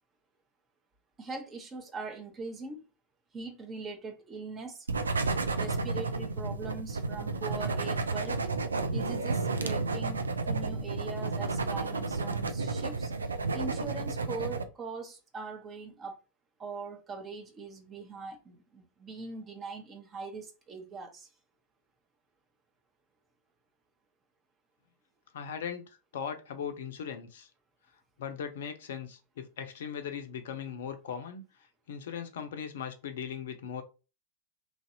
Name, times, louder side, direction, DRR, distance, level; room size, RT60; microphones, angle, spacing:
voice 1, 1.2-2.8 3.3-4.9 5.5-8.6 8.9-16.2 16.6-21.3, right 4 dB, 20° right, 0.8 m, -41 dB
sound 1, 4.9-14.6, right 3 dB, 75° right, 0.4 m, -32 dB
voice 2, 25.3-27.5 28.2-31.4 31.9-33.8, left 7 dB, 60° left, 0.5 m, -39 dB
3.1 x 2.6 x 2.7 m
figure-of-eight pair, 90°, 0 cm